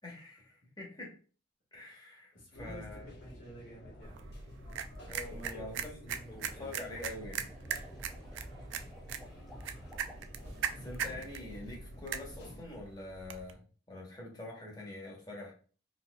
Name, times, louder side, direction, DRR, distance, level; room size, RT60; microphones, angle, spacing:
voice 1, 0.0-1.2 1.7-2.3 2.6-3.1 5.1-7.4 10.8-13.6 13.9-15.5, left 2 dB, 20° left, -2 dB, 0.9 m, -45 dB
voice 2, 2.3-4.2 5.3-6.7 9.2-10.1, equal, 85° left, -5 dB, 1.6 m, -52 dB
sound 1, 2.5-12.6, equal, 55° left, 0.9 m, -50 dB
sound 2, 4.0-13.5, right 7 dB, 75° right, 0.3 m, -41 dB
sound 3, 6.0-11.0, equal, ahead, 0.4 m, -57 dB
4.2 x 2.6 x 2.2 m, 0.40 s
head